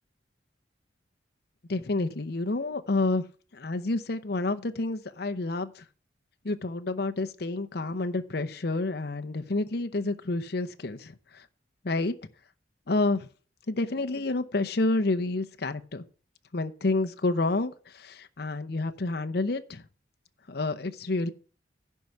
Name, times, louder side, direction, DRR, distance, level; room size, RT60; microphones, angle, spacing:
voice 1, 1.7-3.3 3.5-5.8 6.4-11.5 11.8-12.1 12.9-13.3 13.7-16.0 16.5-19.8 20.5-21.3, left 2 dB, 55° left, 0.8 m, -29 dB
11.0 x 4.7 x 7.7 m
head